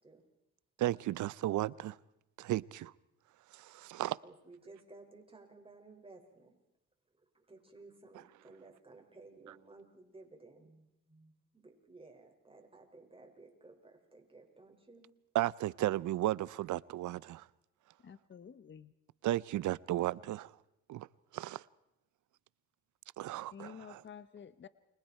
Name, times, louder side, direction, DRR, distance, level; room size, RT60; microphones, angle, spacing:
voice 1, 0.8-1.9 2.4-2.9 3.5-4.2 15.3-17.4 19.2-20.5 20.9-21.1 21.3-21.6 23.2-24.0, right 14 dB, 75° right, 0.7 m, -34 dB
voice 2, 4.2-6.6 7.2-15.1, right 3 dB, 20° right, 5.6 m, -56 dB
voice 3, 18.0-18.9 23.5-24.7, left 7 dB, 40° left, 1.0 m, -50 dB
29.5 x 25.5 x 4.5 m
cardioid pair, 90°, 30 cm